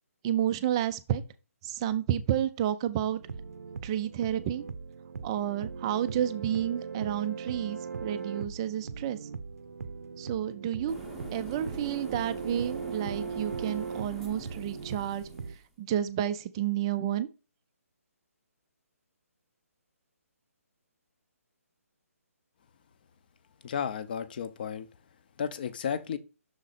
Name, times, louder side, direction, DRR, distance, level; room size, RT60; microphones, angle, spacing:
voice 1, 0.2-1.2 1.6-3.2 3.8-4.6 5.2-9.2 10.2-15.3 15.8-17.3, right 11 dB, 20° right, 0.4 m, -30 dB
sound 1, 3.2-15.6, right 5 dB, 75° right, 0.6 m, -39 dB
sound 2, 10.9-15.7, equal, 5° left, 0.8 m, -46 dB
voice 2, 23.6-24.9 25.4-26.2, left 7 dB, 35° left, 0.6 m, -33 dB
6.4 x 4.0 x 4.0 m
hypercardioid pair, 160°, 8 cm